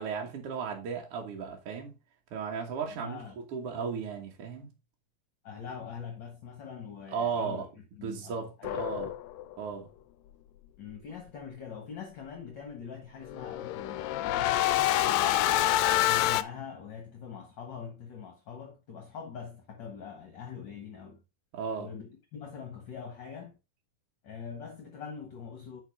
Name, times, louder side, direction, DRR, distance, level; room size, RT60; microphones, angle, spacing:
voice 1, 0.0-1.9 2.3-3.2 3.5-4.7 7.1-7.7 8.0-9.1 9.6-9.9 21.5-21.9, right 6 dB, 55° right, 2.3 m, -35 dB
voice 2, 2.9-3.4 5.4-7.6 7.9-9.1 10.8-21.2 21.8-23.6 24.2-25.8, left 6 dB, 50° left, 1.6 m, -43 dB
sound 1, 8.6-9.5 13.3-16.4, left 14 dB, 80° left, 1.7 m, -27 dB
10.0 x 4.4 x 3.5 m
omnidirectional pair, 3.4 m